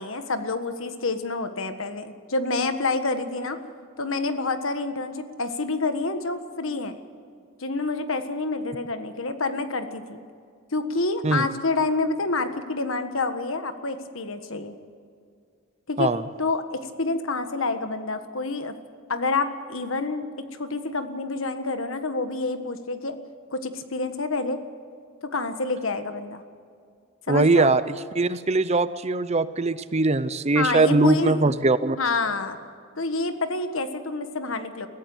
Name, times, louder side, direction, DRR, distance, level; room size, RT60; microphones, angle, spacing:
voice 1, 0.0-3.6 4.0-6.9 7.6-10.2 10.7-14.7 15.9-16.1 16.4-18.7 19.1-20.3 20.6-23.2 23.5-24.6 25.3-26.4 27.3-27.7 30.5-31.4 32.0-32.6 33.0-34.9, left 3 dB, 65° left, 8 dB, 1.5 m, -28 dB
voice 2, 27.3-27.8 28.1-32.0, right 3 dB, 30° right, 14 dB, 0.6 m, -21 dB
22.0 x 15.5 x 8.0 m, 2.3 s
head